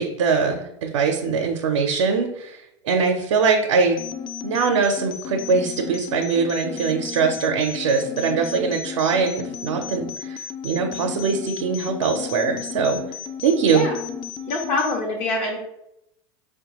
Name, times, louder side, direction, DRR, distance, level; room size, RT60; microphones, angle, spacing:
voice 1, 0.0-4.1 4.4-13.0 13.4-13.9, right 5 dB, 75° right, 2 dB, 0.5 m, -22 dB
sound 1, 4.0-15.0, left 8 dB, 30° left, 0.4 m, -34 dB
voice 2, 14.5-15.6, left 2 dB, 55° left, -1 dB, 0.8 m, -24 dB
4.4 x 2.2 x 2.9 m, 0.82 s
hypercardioid pair, 100°, 15 cm